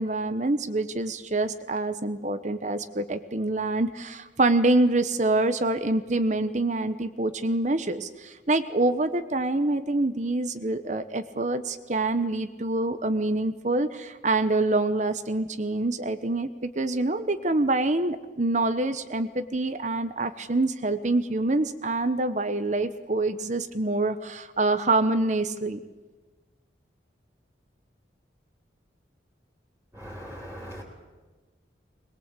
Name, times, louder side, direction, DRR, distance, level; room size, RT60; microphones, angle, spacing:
voice 1, 0.0-25.8, right 2 dB, 40° right, 11 dB, 0.9 m, -26 dB
voice 2, 30.0-30.8, equal, 10° right, -1 dB, 3.5 m, -40 dB
21.5 x 21.0 x 8.2 m, 1.3 s
head